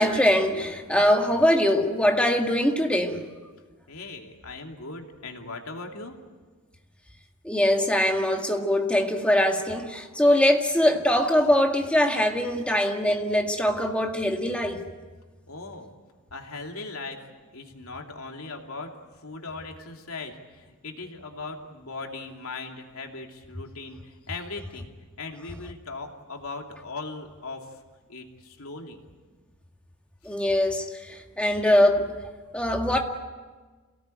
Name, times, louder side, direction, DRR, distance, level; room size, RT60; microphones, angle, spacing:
voice 1, 0.0-3.2 7.4-14.8 30.2-32.1 32.5-33.0, left 1 dB, 5° left, 2 dB, 2.0 m, -22 dB
voice 2, 3.9-6.2 15.5-15.9 16.3-17.2 17.5-18.9 19.2-24.9 25.2-27.7 28.1-29.0, left 3 dB, 80° left, 2 dB, 2.8 m, -39 dB
28.0 x 18.0 x 9.2 m, 1.3 s
head